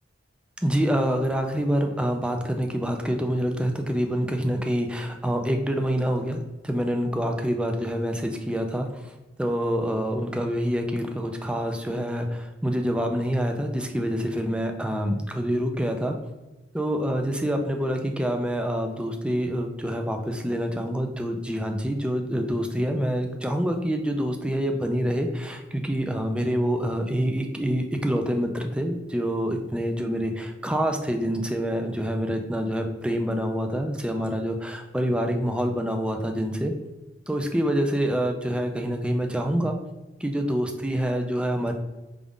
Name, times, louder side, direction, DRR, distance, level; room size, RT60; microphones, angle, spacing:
voice 1, 0.6-16.2 16.7-36.7 37.3-39.8 40.2-41.7, equal, 5° right, 4 dB, 0.4 m, -26 dB
5.1 x 2.3 x 3.5 m, 1.1 s
head